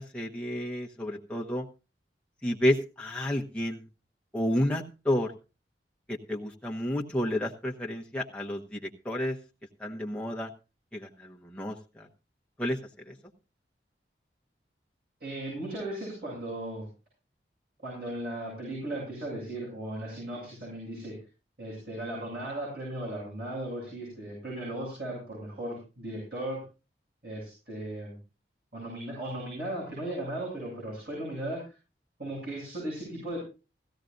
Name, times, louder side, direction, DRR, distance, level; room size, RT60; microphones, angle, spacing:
voice 1, 0.0-1.6 2.4-3.8 4.3-5.3 6.1-9.4 9.8-10.5 10.9-12.1 12.6-12.8 13.1-13.2, left 1 dB, 5° left, -2 dB, 1.1 m, -31 dB
voice 2, 15.2-16.9 17.8-21.1 21.6-26.6 27.2-28.1 28.7-31.6 32.2-33.4, right 1 dB, 65° right, -5 dB, 8.0 m, -36 dB
16.5 x 15.5 x 2.6 m, 0.31 s
head